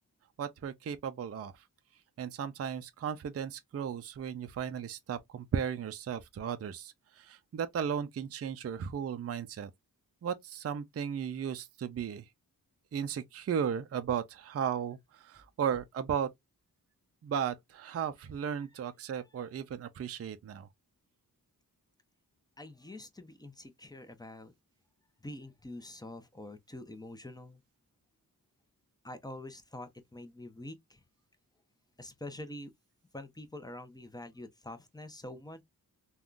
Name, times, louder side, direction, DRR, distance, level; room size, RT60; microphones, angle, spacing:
voice 1, 0.4-1.5 2.2-9.7 10.2-12.2 12.9-16.3 17.2-20.7, right 8 dB, 40° right, 0.4 m, -35 dB
voice 2, 22.6-24.5 25.2-27.6 29.0-31.0 32.0-32.7 33.1-35.6, left 1 dB, 10° left, 0.6 m, -46 dB
3.5 x 2.3 x 2.4 m
wide cardioid pair, 80°, 38 cm